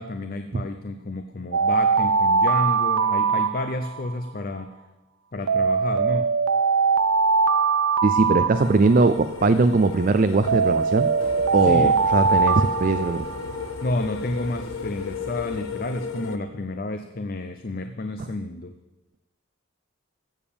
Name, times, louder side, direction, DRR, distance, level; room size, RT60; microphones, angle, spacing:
voice 1, 0.0-4.8 5.3-6.3 11.6-12.0 13.8-18.8, left 2 dB, 45° left, 8 dB, 0.6 m, -30 dB
Alarm, 1.5-4.1 5.5-9.1 10.5-13.7, right 5 dB, 85° right, 0.6 m, -21 dB
voice 2, 8.0-11.1 11.5-13.3, right 3 dB, 40° right, 10 dB, 0.4 m, -20 dB
sound 1, 8.5-16.4, left 5 dB, 85° left, 0.8 m, -35 dB
sound 2, 11.2-15.6, equal, 70° left, 4.9 m, -43 dB
15.5 x 7.2 x 7.0 m, 1.1 s
head